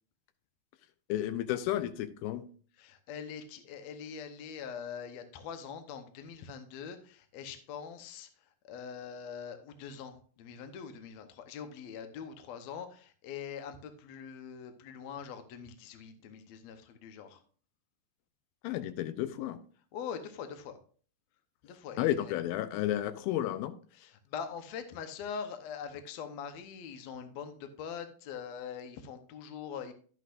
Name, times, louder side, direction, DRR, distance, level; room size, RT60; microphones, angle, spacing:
voice 1, 1.1-2.5 18.6-19.6 22.0-23.7, left 13 dB, 90° left, 12 dB, 2.5 m, -32 dB
voice 2, 2.8-8.3 8.7-17.4 19.9-20.8 21.6-22.4 24.0-29.9, left 7 dB, 70° left, 8 dB, 1.7 m, -43 dB
11.5 x 8.1 x 2.5 m, 0.42 s
omnidirectional pair, 4.2 m